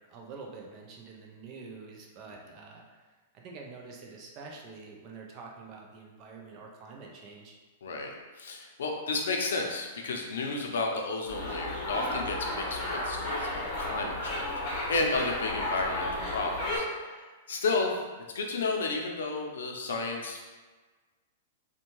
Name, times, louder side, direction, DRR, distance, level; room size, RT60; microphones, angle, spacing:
voice 1, 0.1-3.1 3.3-7.6, right 4 dB, 30° right, 0 dB, 0.4 m, -46 dB
voice 2, 7.8-18.0 18.3-20.4, left 3 dB, 90° left, 1 dB, 0.5 m, -32 dB
sound 1, 11.3-16.8, left 1 dB, 30° left, 0.8 m, -33 dB
2.6 x 2.2 x 3.0 m, 1.3 s
supercardioid pair, 155°, 0 cm